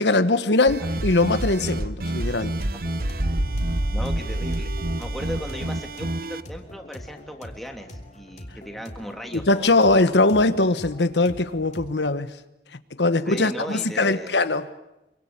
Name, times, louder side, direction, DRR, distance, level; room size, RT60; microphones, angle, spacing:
voice 1, 0.0-2.5 9.3-12.3 13.0-14.7, left 2 dB, 85° left, 11 dB, 1.3 m, -21 dB
sound 1, 0.7-6.4, right 1 dB, 55° right, 1.2 m, -27 dB
sound 2, 2.5-11.9, left 1 dB, 40° left, 3.1 m, -43 dB
voice 2, 3.9-4.7 5.0-9.7 13.2-14.4, equal, ahead, 3 dB, 2.9 m, -37 dB
26.5 x 24.5 x 8.8 m, 0.93 s
head